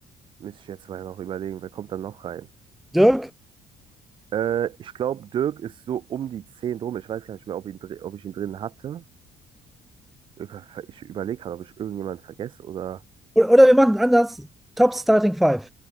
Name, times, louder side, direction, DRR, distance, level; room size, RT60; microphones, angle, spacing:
voice 1, 0.4-2.5 4.3-9.0 10.4-13.0, right 10 dB, 50° right, 2.2 m, -31 dB
voice 2, 2.9-3.3 13.4-14.5 14.8-15.7, equal, ahead, 0.5 m, -17 dB
cardioid pair, 115°, 11 cm